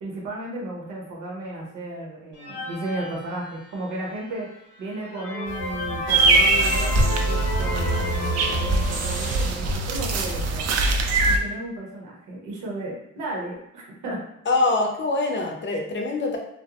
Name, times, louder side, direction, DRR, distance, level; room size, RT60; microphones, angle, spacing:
voice 1, 0.0-4.5 4.8-10.6 11.2-14.2, right 2 dB, 90° right, -2 dB, 0.9 m, -34 dB
sound 1, 2.3-4.0 4.5-4.6 5.0-9.5, left 2 dB, 70° left, 0.8 m, -33 dB
sound 2, 5.5-10.7, equal, 25° right, 0.8 m, -30 dB
sound 3, 6.1-11.4, right 3 dB, 55° right, 0.4 m, -23 dB
voice 2, 14.5-16.4, left 3 dB, 40° left, 1 dB, 0.6 m, -24 dB
2.5 x 2.0 x 2.9 m, 0.84 s
cardioid pair, 90°, 30 cm